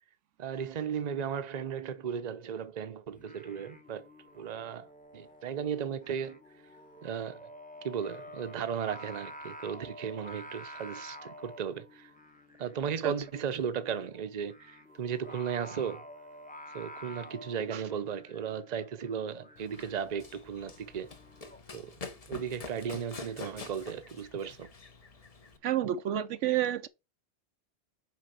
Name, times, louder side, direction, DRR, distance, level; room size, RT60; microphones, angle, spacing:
voice 1, 0.4-4.1 4.3-4.9 5.1-6.4 7.0-7.5 7.8-12.1 12.6-16.1 16.7-21.1 21.7-21.9 22.3-24.7 25.8-25.9, right 7 dB, 40° right, 0.7 m, -35 dB
Singing, 3.1-21.6, left 1 dB, 10° left, 0.9 m, -50 dB
Run, 19.6-25.6, left 4 dB, 35° left, 0.9 m, -47 dB
voice 2, 25.6-26.9, right 11 dB, 85° right, 1.0 m, -29 dB
6.2 x 5.2 x 6.8 m
omnidirectional pair, 1.2 m